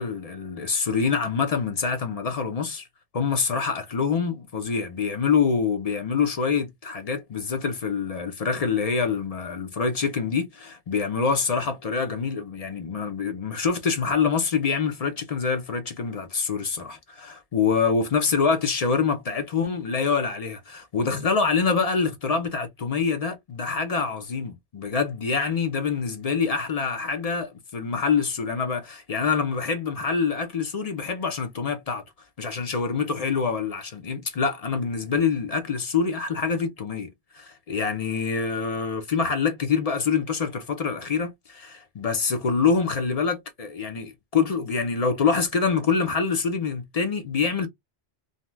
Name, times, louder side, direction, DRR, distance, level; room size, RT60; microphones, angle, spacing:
voice 1, 0.0-2.9 3.1-32.0 32.4-47.7, left 5 dB, 45° left, 0.5 m, -25 dB
2.6 x 2.1 x 3.2 m
omnidirectional pair, 1.1 m